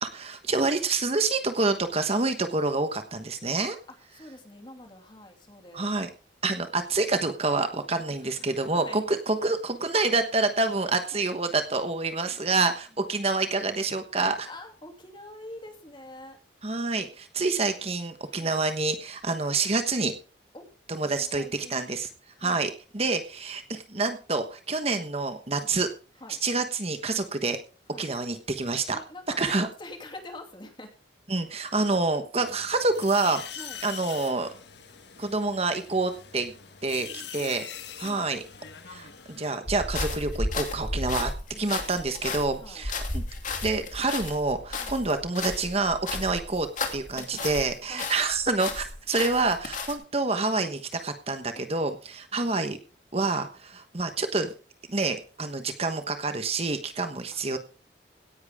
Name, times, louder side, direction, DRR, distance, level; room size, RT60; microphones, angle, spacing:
voice 1, 0.0-3.8 5.7-6.1 6.4-14.5 16.6-20.1 20.9-22.1 22.4-25.9 26.4-27.6 28.0-29.0 29.4-29.7 31.3-34.5 35.2-36.5 36.8-37.6 38.0-38.4 38.9-41.3 41.6-43.2 43.6-46.7 46.9-52.8 53.1-54.5 54.9-57.6, right 3 dB, 35° right, 8 dB, 1.2 m, -27 dB
voice 2, 4.1-5.9 8.2-9.0 11.1-11.2 14.5-16.4 18.3-18.5 20.5-20.7 21.0-21.8 22.4-22.6 25.6-25.7 26.2-26.4 27.9-28.1 28.9-30.9 33.6-33.8 37.0-37.6 38.0-38.3 41.5-42.2 42.6-42.9 44.8-45.0 46.1-46.4 47.0-47.6 47.9-48.1 51.6-51.7 52.3-52.6 53.7-53.8 57.3-57.6, left 1 dB, 25° left, 4 dB, 2.8 m, -46 dB
sound 1, 32.4-39.6, left 8 dB, 70° left, 1.5 m, -43 dB
sound 2, 39.7-47.7 48.0-49.9, left 3 dB, 45° left, 2.6 m, -33 dB
17.0 x 10.5 x 3.6 m, 0.37 s
head